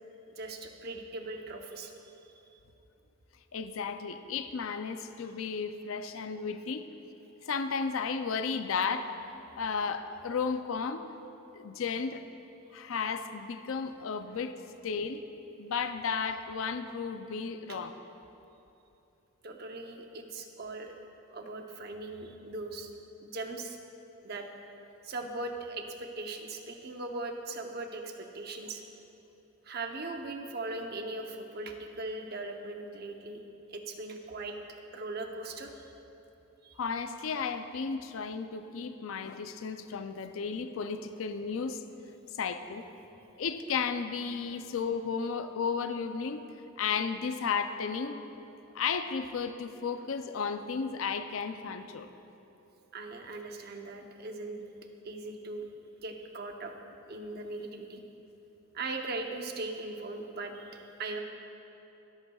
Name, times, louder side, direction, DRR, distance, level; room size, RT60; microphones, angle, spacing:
voice 1, 0.4-1.9 19.4-20.9 21.3-22.9 23.2-23.8 24.2-24.5 25.0-28.8 29.6-33.4 33.7-34.5 34.9-35.9 36.6-36.8 52.9-54.6 55.0-55.7 56.0-56.7 57.1-58.0 58.7-61.2, right 2 dB, 50° right, 4 dB, 0.8 m, -39 dB
voice 2, 3.5-6.8 7.4-9.2 9.6-11.1 11.5-12.2 12.7-15.2 15.6-17.9 36.8-41.8 42.4-42.9 43.4-46.4 46.8-48.2 48.7-52.1, left 5 dB, 75° left, 9 dB, 0.5 m, -33 dB
22.0 x 8.1 x 2.3 m, 3.0 s
head